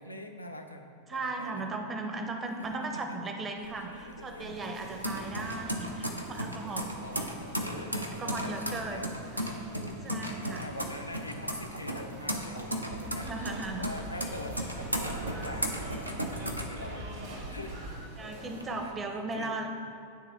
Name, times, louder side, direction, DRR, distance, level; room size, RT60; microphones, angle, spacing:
voice 1, 0.0-1.7 2.6-3.3 3.7-4.6 6.7-19.7, left 1 dB, 85° left, 3 dB, 0.4 m, -45 dB
voice 2, 1.1-6.9 8.2-9.1 10.0-10.7 13.0-13.9 18.2-19.7, right 3 dB, 20° right, 4 dB, 0.6 m, -37 dB
sound 1, 3.6-17.4 17.8-18.6, equal, 85° right, 0.5 m, -36 dB
sound 2, 4.4-18.9, right 2 dB, 50° right, 1.2 m, -48 dB
sound 3, 12.9-17.9, right 1 dB, 65° right, 1.4 m, -42 dB
9.4 x 3.4 x 3.6 m, 2.4 s
figure-of-eight pair, 90°, 0 cm